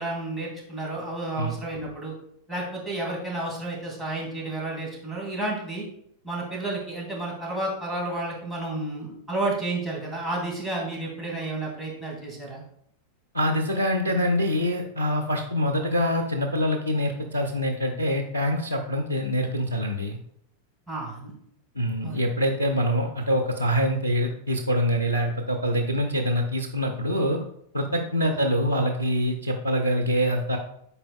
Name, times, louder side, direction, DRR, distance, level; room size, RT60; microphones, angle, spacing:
voice 1, 0.0-2.1 2.5-5.9 6.2-12.6 20.9-21.3 22.0-22.2 28.3-28.4, right 2 dB, 5° left, -2 dB, 2.2 m, -31 dB
voice 2, 13.3-20.2 21.8-27.4 27.7-30.6, equal, 85° left, 4 dB, 0.6 m, -25 dB
10.0 x 4.3 x 2.3 m, 0.72 s
figure-of-eight pair, 90°, 0 cm